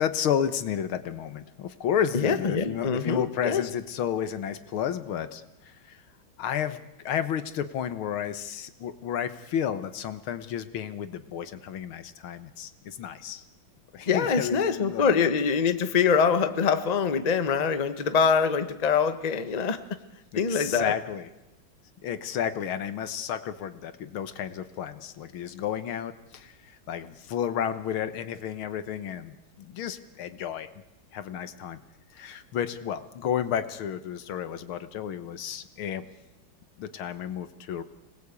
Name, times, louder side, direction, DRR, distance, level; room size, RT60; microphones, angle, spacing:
voice 1, 0.0-6.0 6.4-6.8 7.1-13.4 13.9-15.3 20.3-21.3 22.0-30.7 31.1-31.8 32.1-36.1 36.8-37.8, left 9 dB, 85° left, 12 dB, 2.0 m, -32 dB
voice 2, 2.1-3.6 14.1-19.8 20.3-20.9, left 6 dB, 25° left, 10 dB, 0.9 m, -24 dB
26.0 x 19.5 x 8.4 m, 0.98 s
omnidirectional pair, 2.2 m